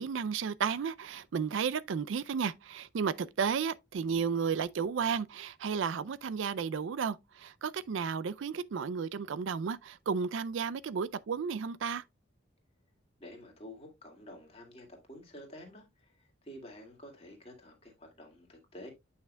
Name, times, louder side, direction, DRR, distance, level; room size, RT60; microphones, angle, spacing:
voice 1, 0.0-12.0, right 6 dB, 75° right, 0.4 m, -33 dB
voice 2, 13.2-16.1 16.4-18.9, left 1 dB, 30° left, 2.1 m, -50 dB
9.0 x 5.8 x 2.2 m
head